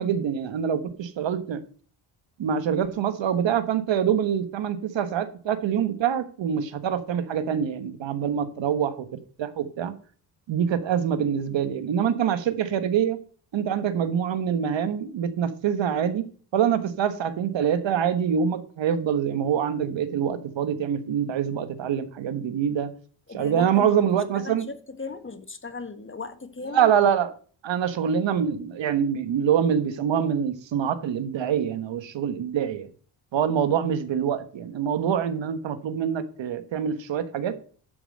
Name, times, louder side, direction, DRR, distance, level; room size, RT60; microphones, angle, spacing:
voice 1, 0.0-1.6 2.4-10.0 10.5-13.2 13.5-22.9 23.3-24.7 26.7-27.3 27.6-32.9 33.3-37.6, right 8 dB, 65° right, 1.3 m, -25 dB
voice 2, 23.3-26.9, left 4 dB, 25° left, 1.4 m, -37 dB
11.0 x 5.1 x 6.4 m
supercardioid pair, 65°, 48 cm